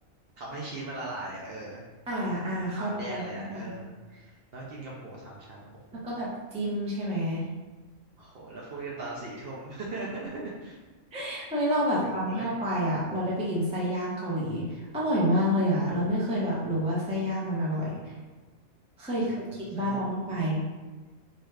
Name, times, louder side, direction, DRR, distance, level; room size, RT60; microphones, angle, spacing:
voice 1, 0.4-1.9 2.2-2.3 2.7-4.2 4.5-6.0 8.2-10.8 11.9-12.5 19.2-20.1, right 2 dB, 60° right, -4 dB, 0.6 m, -39 dB
voice 2, 2.1-3.2 3.5-3.7 5.9-7.5 11.1-18.1 19.0-20.6, equal, 10° right, -6 dB, 0.3 m, -29 dB
2.7 x 2.3 x 3.1 m, 1.3 s
omnidirectional pair, 1.3 m